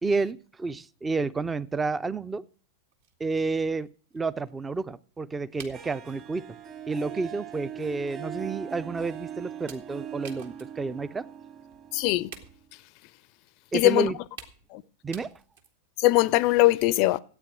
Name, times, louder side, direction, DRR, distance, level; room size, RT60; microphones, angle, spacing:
voice 1, 0.0-2.4 3.2-3.9 4.1-6.6 6.9-11.2 13.7-14.2 15.0-15.3, right 4 dB, 15° right, 0.5 m, -30 dB
sound 1, 2.5-2.6 2.9-4.8 5.6-6.2 6.9-7.1 7.5-7.6 8.2-8.3 9.0-9.2 9.7-11.0 11.3-11.4 11.7-11.9 12.3-12.8 13.8-13.9 14.4-14.8 15.1-15.9, right 6 dB, 55° right, 1.7 m, -49 dB
Harp, 5.7-12.6, right 9 dB, 35° right, 1.6 m, -41 dB
voice 2, 11.9-12.3 13.7-14.1 14.7-14.8 16.0-17.2, left 18 dB, 45° left, 0.5 m, -21 dB
13.5 x 8.8 x 6.1 m
figure-of-eight pair, 90°, 0 cm